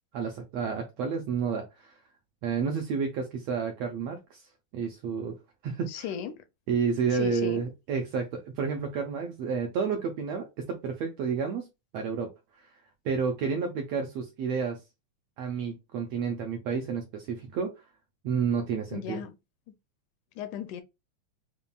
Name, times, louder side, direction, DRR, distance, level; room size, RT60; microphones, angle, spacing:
voice 1, 0.1-1.9 2.4-4.4 4.7-5.4 5.6-6.1 6.7-11.7 11.9-12.3 12.6-12.7 13.0-14.8 15.4-17.7 18.2-19.2, right 6 dB, 80° right, 1.5 m, -30 dB
voice 2, 5.9-6.4 7.1-7.6 18.9-19.4 20.4-20.8, left 9 dB, 85° left, 2.0 m, -36 dB
7.0 x 2.4 x 2.2 m
omnidirectional pair, 3.5 m